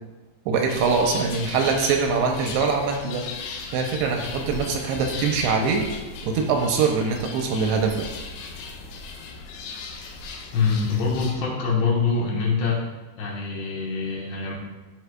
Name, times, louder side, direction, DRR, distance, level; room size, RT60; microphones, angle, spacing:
voice 1, 0.5-3.3 3.7-5.8 6.2-8.1, right 5 dB, 80° right, 2 dB, 2.7 m, -23 dB
sound 1, 0.7-11.4, left 4 dB, 90° left, 3.0 m, -37 dB
voice 2, 10.5-12.8 13.2-14.6, left 4 dB, 75° left, -3 dB, 3.2 m, -24 dB
12.5 x 4.7 x 2.3 m, 1.1 s
omnidirectional pair, 5.0 m